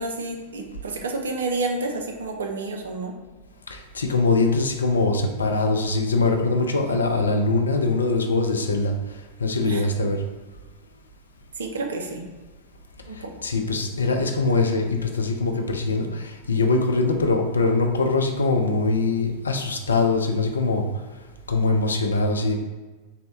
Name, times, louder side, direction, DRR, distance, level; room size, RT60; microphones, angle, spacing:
voice 1, 0.0-3.1 9.6-9.8 11.6-12.2 13.1-13.3, right 3 dB, 65° right, 2 dB, 0.5 m, -29 dB
voice 2, 3.7-8.9 9.4-10.2 13.4-20.8 21.5-22.6, left 3 dB, 75° left, 4 dB, 0.4 m, -22 dB
3.9 x 2.1 x 2.9 m, 1.3 s
figure-of-eight pair, 90°, 0 cm